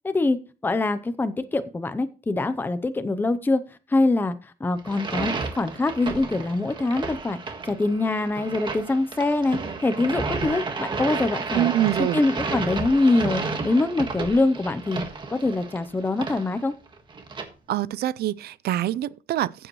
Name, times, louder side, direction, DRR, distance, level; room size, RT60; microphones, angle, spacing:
voice 1, 0.0-0.4 0.6-3.6 3.9-4.3 4.6-7.4 7.6-11.7 12.0-15.0 15.3-16.7, left 2 dB, 10° left, 0.7 m, -24 dB
sound 1, 4.8-17.4, right 4 dB, 30° right, 1.7 m, -32 dB
voice 2, 11.5-12.2 17.7-19.7, right 13 dB, 75° right, 0.6 m, -25 dB
15.0 x 7.8 x 3.1 m
cardioid pair, 165°, 16 cm